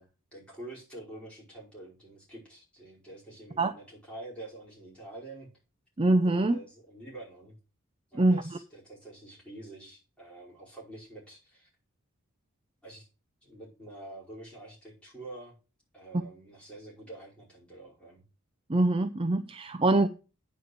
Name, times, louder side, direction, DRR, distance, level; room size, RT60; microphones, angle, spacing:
voice 1, 0.0-5.5 6.2-7.6 8.1-11.7 12.8-13.1 13.4-15.5 15.9-18.2, right 2 dB, 5° left, 5.2 m, -47 dB
voice 2, 6.0-6.6 8.1-8.4 18.7-20.1, right 2 dB, 25° right, 0.5 m, -24 dB
9.5 x 5.1 x 8.0 m
head